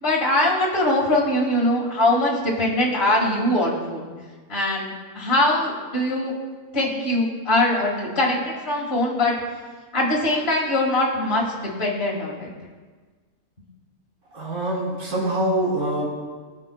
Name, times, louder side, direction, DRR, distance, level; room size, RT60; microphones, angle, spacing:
voice 1, 0.0-4.1 4.5-6.3 6.7-9.3 9.9-12.5, left 1 dB, 40° left, -4 dB, 2.1 m, -22 dB
voice 2, 14.3-16.1, right 1 dB, 90° right, -6 dB, 4.1 m, -24 dB
22.5 x 7.5 x 2.3 m, 1.4 s
omnidirectional pair, 1.6 m